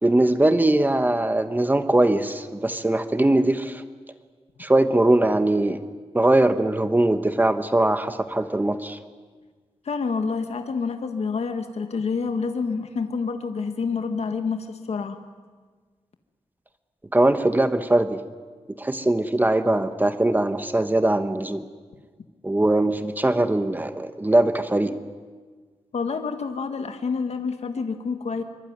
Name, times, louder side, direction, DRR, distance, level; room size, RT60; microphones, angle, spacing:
voice 1, 0.0-3.8 4.6-5.8 6.1-9.0 17.1-18.2 18.8-21.6 22.4-25.0, right 1 dB, 15° right, 10 dB, 1.1 m, -21 dB
voice 2, 9.8-15.2 25.9-28.4, left 5 dB, 70° left, 7 dB, 1.7 m, -28 dB
25.0 x 24.0 x 9.5 m, 1.5 s
wide cardioid pair, 125°, 11 cm